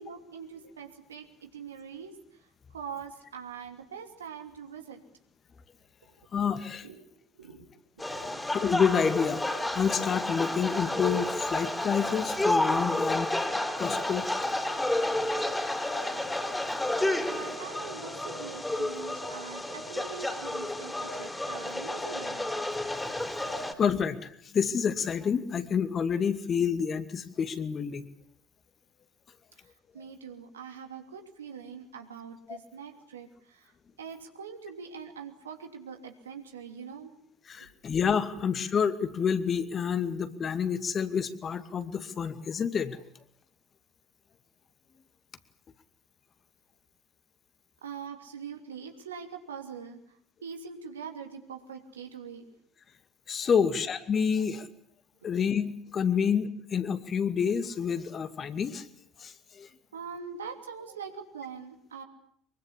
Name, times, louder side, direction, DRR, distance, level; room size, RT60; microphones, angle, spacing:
voice 1, 0.0-2.1 2.4-2.5 2.7-5.0 6.8-7.0 7.3-7.7 8.0-8.1 17.3-22.4 29.6-33.7 34.0-37.1 37.6-37.7 47.8-52.5 53.6-53.8 54.3-54.4 56.2-56.3 59.9-62.0, right 6 dB, 80° right, 5 dB, 2.9 m, -43 dB
voice 2, 6.3-6.9 8.5-9.4 9.7-14.3 23.7-28.0 32.5-32.6 37.5-43.0 53.3-54.7 55.2-58.9 59.2-59.7, left 7 dB, 40° left, 10 dB, 2.3 m, -28 dB
sound 1, 8.0-23.7, left 1 dB, 10° left, 3.8 m, -31 dB
24.0 x 23.5 x 8.5 m, 0.66 s
figure-of-eight pair, 60°, 0 cm